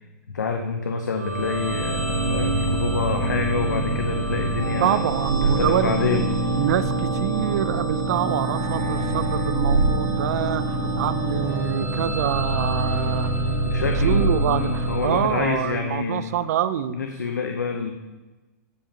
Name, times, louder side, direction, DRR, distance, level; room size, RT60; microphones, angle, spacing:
voice 1, 0.3-5.0 5.4-6.3 13.6-16.3 16.9-17.9, left 5 dB, 90° left, 5 dB, 0.8 m, -27 dB
sound 1, 1.2-15.9, right 2 dB, 90° right, 3.2 m, -25 dB
voice 2, 4.8-6.2 6.6-13.4 14.0-17.0, right 10 dB, 65° right, 14 dB, 0.5 m, -26 dB
16.0 x 5.5 x 2.9 m, 1.2 s
hypercardioid pair, 120°, 9 cm